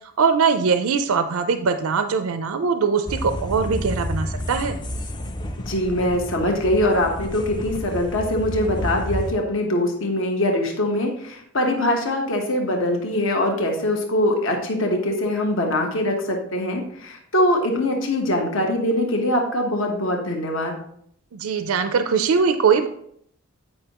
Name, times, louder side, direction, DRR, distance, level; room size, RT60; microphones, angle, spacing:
voice 1, 0.2-4.8 21.3-22.9, right 5 dB, 80° right, 8 dB, 0.4 m, -21 dB
sound 1, 3.1-9.3, left 1 dB, 20° left, 0.4 m, -30 dB
voice 2, 5.7-20.8, left 1 dB, 60° left, 2 dB, 1.1 m, -23 dB
8.7 x 5.4 x 2.9 m, 0.68 s
head